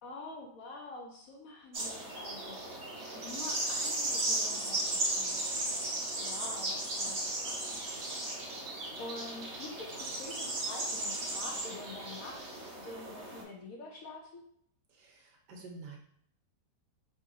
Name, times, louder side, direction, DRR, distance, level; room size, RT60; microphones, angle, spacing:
voice 1, 0.0-2.8 3.1-5.7 6.2-7.6 9.0-14.4, left 2 dB, 65° left, 0 dB, 0.9 m, -47 dB
sound 1, 1.7-13.4, right 2 dB, 45° right, 1.2 m, -35 dB
voice 2, 14.9-16.0, right 3 dB, 80° right, 1 dB, 1.4 m, -49 dB
4.7 x 2.9 x 2.6 m, 0.67 s
omnidirectional pair, 1.8 m